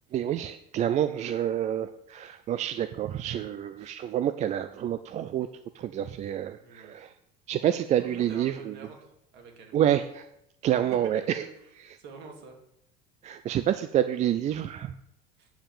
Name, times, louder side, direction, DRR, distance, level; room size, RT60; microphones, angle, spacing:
voice 1, 0.1-5.5 5.7-7.1 7.5-8.7 9.7-10.2 10.6-11.5 13.2-14.9, right 11 dB, 35° right, 11 dB, 0.4 m, -28 dB
voice 2, 6.6-7.0 7.5-7.6 8.0-9.7 11.3-11.5 12.0-12.6 15.4-15.5, right 4 dB, 55° right, 2 dB, 2.7 m, -47 dB
8.9 x 5.7 x 7.2 m, 0.82 s
cardioid pair, 135°, 20 cm